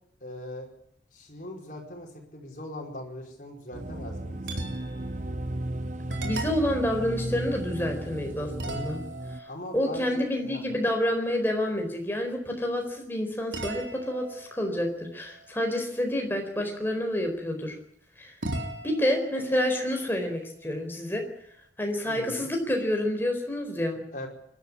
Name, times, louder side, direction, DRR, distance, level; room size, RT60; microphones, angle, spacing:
voice 1, 0.2-0.7 1.1-4.5 9.5-10.8 22.1-22.5 24.1-24.3, left 1 dB, 45° left, 1 dB, 5.1 m, -40 dB
sound 1, 3.7-9.4, right 1 dB, 40° right, 0.9 m, -34 dB
sound 2, 4.4-5.1 5.6-5.7 6.1-8.1 8.6-11.2 13.5-16.2 18.4-21.0, right 2 dB, 75° right, 3.7 m, -40 dB
voice 2, 6.2-9.0 9.7-17.7 18.2-18.3 18.8-21.2 21.8-24.0, left 1 dB, 10° left, 2 dB, 4.4 m, -28 dB
24.5 x 12.5 x 9.9 m, 0.70 s
head